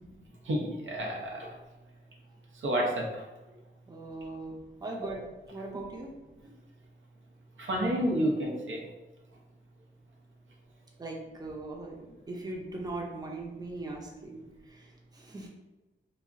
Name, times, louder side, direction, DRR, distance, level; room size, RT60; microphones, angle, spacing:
voice 1, 0.5-1.5 2.6-3.2 7.6-8.8, equal, 80° right, -1 dB, 0.6 m, -29 dB
voice 2, 3.9-5.2 5.5-6.1 11.0-14.4 14.7-15.5, right 2 dB, 20° right, -1 dB, 0.5 m, -40 dB
2.3 x 2.0 x 3.5 m, 1.1 s
wide cardioid pair, 85°, 20 cm